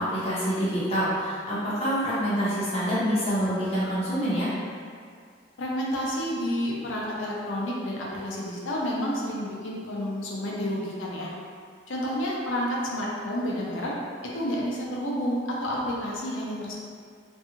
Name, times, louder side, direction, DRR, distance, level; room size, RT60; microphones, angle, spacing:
voice 1, 0.0-4.5, equal, 30° left, -11 dB, 0.7 m, -26 dB
voice 2, 5.6-11.3 11.9-13.9 14.3-16.8, equal, 85° left, -4 dB, 0.5 m, -30 dB
2.5 x 2.3 x 2.8 m, 2.1 s
head